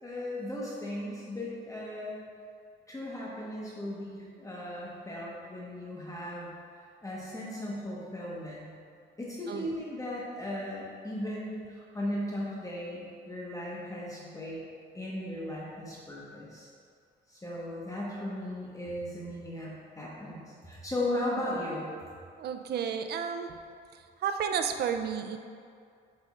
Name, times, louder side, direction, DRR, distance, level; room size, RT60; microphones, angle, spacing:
voice 1, 0.0-2.2 2.9-8.7 9.2-14.6 14.9-16.7 17.3-21.9, left 1 dB, 15° left, -6 dB, 1.2 m, -37 dB
voice 2, 22.4-23.6 24.2-25.4, right 7 dB, 55° right, 7 dB, 0.5 m, -32 dB
8.1 x 5.1 x 2.5 m, 2.3 s
cardioid pair, 90°, 20 cm